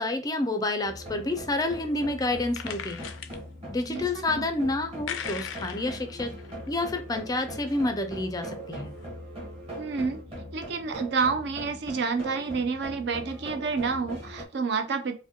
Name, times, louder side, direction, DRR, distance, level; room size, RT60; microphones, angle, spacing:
voice 1, 0.0-3.1 3.7-6.3 6.7-8.9, left 2 dB, 20° left, 8 dB, 0.4 m, -29 dB
sound 1, 0.8-14.4, equal, 30° right, 1.2 m, -41 dB
sound 2, 1.0-1.4 2.2-3.4 4.3-4.5 5.1-6.8 7.2-8.3 8.7-8.8 9.0-9.1, left 8 dB, 85° left, 0.4 m, -39 dB
voice 2, 3.9-4.5 9.8-10.2 10.5-15.2, right 5 dB, 60° right, 7 dB, 0.5 m, -29 dB
4.7 x 2.2 x 2.8 m, 0.36 s
head